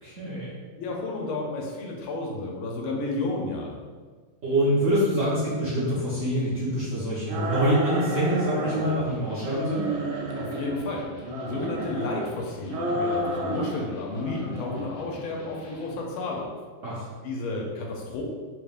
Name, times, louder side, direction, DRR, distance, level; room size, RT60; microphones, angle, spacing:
voice 1, 0.0-0.5 4.4-9.9 16.8-17.1, equal, 60° right, -9 dB, 0.8 m, -25 dB
voice 2, 0.8-3.7 10.3-11.1 11.5-16.5 17.2-18.2, left 2 dB, 85° left, -1 dB, 1.5 m, -32 dB
sound 1, 7.3-9.0 9.4-10.8 11.2-12.3 12.7-13.9 14.1-14.9, right 1 dB, 80° right, 1.4 m, -30 dB
Electric guitar, 8.8-16.1, equal, 55° left, 1.1 m, -45 dB
3.9 x 3.4 x 2.4 m, 1.5 s
omnidirectional pair, 2.3 m